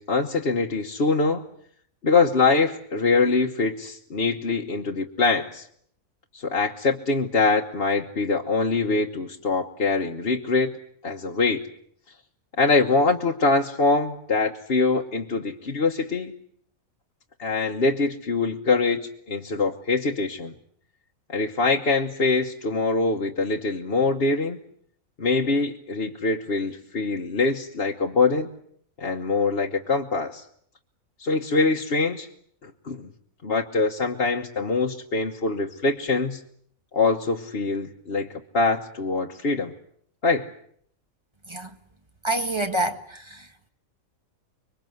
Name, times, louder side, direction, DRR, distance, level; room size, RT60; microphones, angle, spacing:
voice 1, 0.0-1.4 2.0-5.7 6.3-10.7 11.0-11.6 12.6-16.3 17.4-20.5 21.3-24.6 25.2-28.5 29.0-30.4 31.2-32.3 32.6-33.1 33.4-36.4 36.9-39.7 40.2-40.5, left 3 dB, 45° left, 1.4 m, -23 dB
voice 2, 42.2-43.4, right 1 dB, 20° right, 1.5 m, -27 dB
26.0 x 23.5 x 7.9 m
omnidirectional pair, 1.5 m